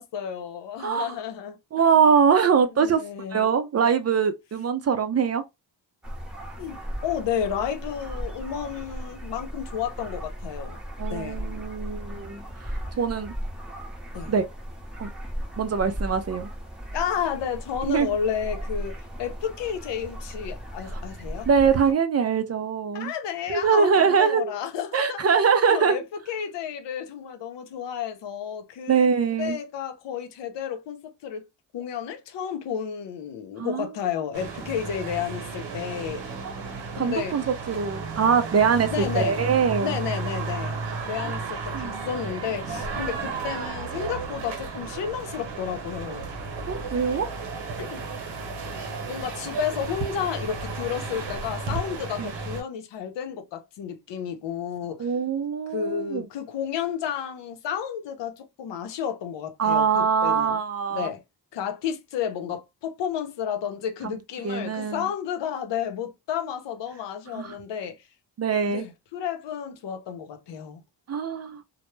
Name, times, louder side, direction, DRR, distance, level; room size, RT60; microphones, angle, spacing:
voice 1, 0.0-1.6 2.8-3.5 6.6-10.8 11.1-11.4 14.1-14.3 16.9-21.5 22.9-25.3 25.7-26.0 26.3-29.1 29.4-31.4 31.7-36.2 36.9-37.4 38.9-39.5 39.8-40.8 41.1-46.3 47.8-48.0 49.1-55.1 55.7-60.6 60.9-61.2 61.5-68.0 68.7-70.8, left 8 dB, 80° left, 0.6 m, -32 dB
voice 2, 0.8-1.2 1.7-3.0 3.3-5.4 11.0-13.3 14.3-14.4 15.0-15.1 15.6-16.5 17.9-18.1 20.9-21.0 21.5-23.1 23.5-24.5 24.9-26.0 28.9-29.6 33.6-33.9 36.4-36.5 36.9-40.0 41.7-42.1 46.7-47.3 52.2-52.3 55.0-56.3 59.6-61.1 64.0-64.2 64.4-65.1 67.3-67.5 68.4-68.9 71.1-71.6, right 6 dB, 35° right, 0.4 m, -23 dB
sound 1, 6.0-21.9, equal, ahead, 0.7 m, -36 dB
sound 2, 34.3-52.6, right 4 dB, 85° right, 0.9 m, -33 dB
2.1 x 2.0 x 3.0 m
cardioid pair, 85°, 43 cm